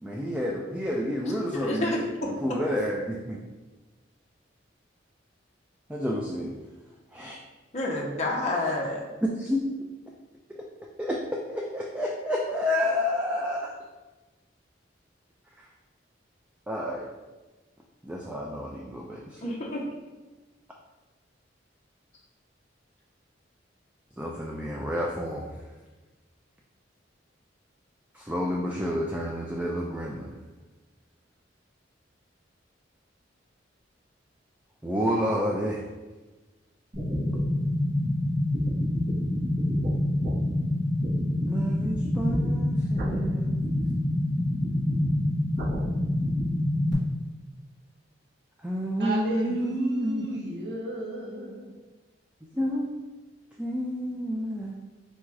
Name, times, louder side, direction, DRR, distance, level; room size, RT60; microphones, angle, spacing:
voice 1, 0.0-3.4 5.9-6.6 7.1-7.4 9.4-9.6 11.0-11.2 11.5-13.7 15.6-15.7 16.7-17.1 18.0-19.5 24.2-25.5 28.1-30.4 34.8-35.9 41.5-43.6 48.6-50.4 52.5-52.9 53.6-54.7, equal, 5° right, 0.3 m, -30 dB
voice 2, 1.5-2.6 7.7-9.1 19.4-19.9, left 1 dB, 35° left, 0.7 m, -29 dB
sound 1, 36.9-46.9, left 1 dB, 45° right, 1.2 m, -26 dB
voice 3, 49.0-51.8, right 1 dB, 65° right, 0.8 m, -33 dB
4.1 x 2.4 x 4.6 m
head